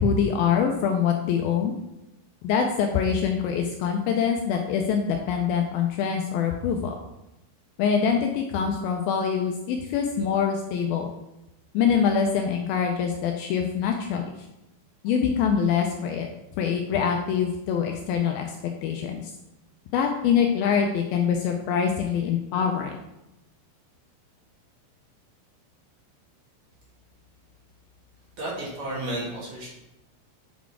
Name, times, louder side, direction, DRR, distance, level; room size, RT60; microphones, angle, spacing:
voice 1, 0.0-1.7 2.4-6.9 7.8-11.1 11.7-14.2 15.0-16.3 16.6-18.5 18.8-19.3 19.9-23.0, left 7 dB, 85° left, 3 dB, 2.2 m, -24 dB
voice 2, 28.4-29.7, right 1 dB, 55° right, -5 dB, 2.6 m, -32 dB
8.3 x 4.1 x 4.6 m, 0.89 s
omnidirectional pair, 4.8 m